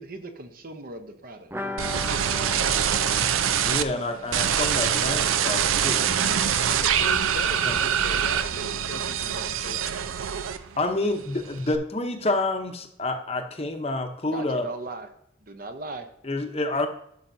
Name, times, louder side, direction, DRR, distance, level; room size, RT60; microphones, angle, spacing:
voice 1, 0.0-2.6 14.3-15.1 15.4-16.1, right 2 dB, 45° right, 0.8 m, -39 dB
sound 1, 1.5-7.1 7.4-7.5 7.8-7.9, left 2 dB, 10° right, 0.5 m, -39 dB
sound 2, 1.8-3.8 4.3-10.9 11.2-11.8, right 8 dB, 90° right, 0.5 m, -24 dB
voice 2, 3.6-6.4 7.6-7.8 10.8-14.7 16.2-16.9, left 2 dB, 30° left, 0.8 m, -28 dB
voice 3, 6.7-9.9, left 4 dB, 60° left, 0.6 m, -39 dB
12.0 x 5.6 x 2.7 m
head